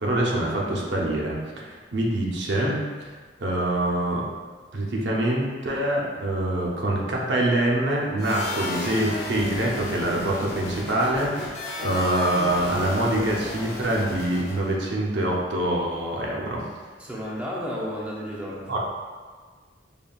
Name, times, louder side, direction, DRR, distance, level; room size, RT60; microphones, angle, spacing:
voice 1, 0.0-1.4 1.7-3.1 3.4-4.2 4.7-16.6 18.7-18.8, right 1 dB, 70° right, -3 dB, 0.6 m, -25 dB
sound 1, 8.2-14.7, left 2 dB, 55° left, 0.5 m, -34 dB
voice 2, 17.0-18.8, equal, 5° right, -6 dB, 0.6 m, -32 dB
5.2 x 2.3 x 2.3 m, 1.5 s
head